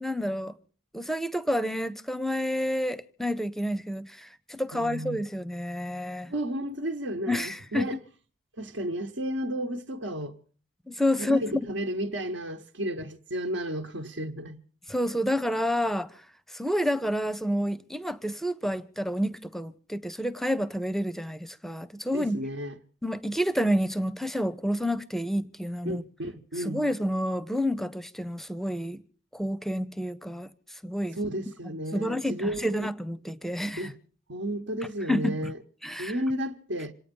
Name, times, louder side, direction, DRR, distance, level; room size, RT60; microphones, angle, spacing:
voice 1, 0.0-0.5 0.9-6.3 7.3-8.0 10.9-11.4 14.9-16.1 16.5-22.4 23.0-26.0 26.6-29.0 29.3-30.5 30.8-31.2 31.9-33.9 35.1-35.5 35.8-36.2, equal, ahead, 0.6 m, -29 dB
voice 2, 4.7-5.2 6.3-8.0 8.6-10.3 11.2-14.6 22.1-22.7 25.8-26.8 31.2-32.9 33.8-34.0 34.3-35.6 36.0-36.9, equal, 70° right, 1.3 m, -33 dB
27.5 x 9.2 x 5.3 m
head